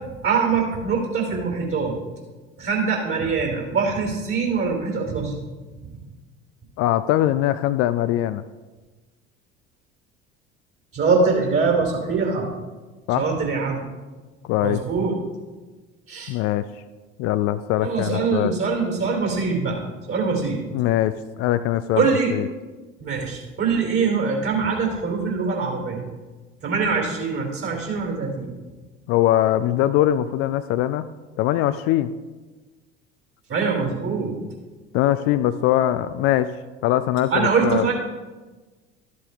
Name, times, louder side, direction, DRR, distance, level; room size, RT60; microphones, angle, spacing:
voice 1, 0.2-2.0 2.6-5.3 10.9-12.5 13.2-13.8 14.6-15.1 16.1-16.3 17.8-20.6 21.9-22.3 23.0-26.0 26.6-28.5 33.5-34.3 37.3-37.9, right 5 dB, 40° right, 0 dB, 3.2 m, -23 dB
voice 2, 6.8-8.4 13.1-13.3 14.4-14.8 16.3-16.7 17.2-18.5 20.7-22.0 22.3-22.5 29.1-31.1 31.4-32.1 34.9-36.5 36.8-37.9, left 13 dB, 45° left, 12 dB, 0.4 m, -21 dB
13.0 x 7.8 x 3.4 m, 1.3 s
figure-of-eight pair, 65°, 34 cm